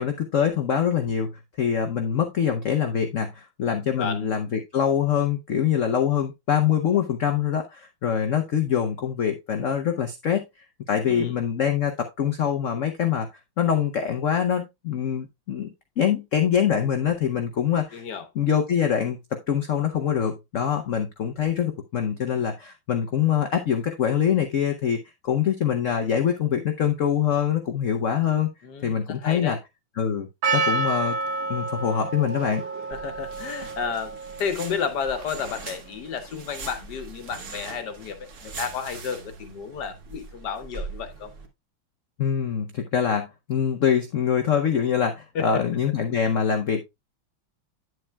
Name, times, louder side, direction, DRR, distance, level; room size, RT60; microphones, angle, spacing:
voice 1, 0.0-1.3 1.6-10.4 10.9-13.3 13.6-18.0 18.4-28.5 28.8-29.6 30.0-30.3 30.5-31.2 31.5-32.6 42.2-46.8, left 8 dB, 85° left, 0.6 m, -24 dB
voice 2, 4.0-4.3 11.1-11.3 17.9-18.3 28.6-29.6 32.9-41.3 45.3-45.6, left 6 dB, 60° left, 1.4 m, -32 dB
Percussion, 30.4-35.7, right 3 dB, 70° right, 1.5 m, -29 dB
sound 1, 32.9-41.5, right 4 dB, 45° right, 1.2 m, -41 dB
9.1 x 7.8 x 2.2 m
omnidirectional pair, 2.3 m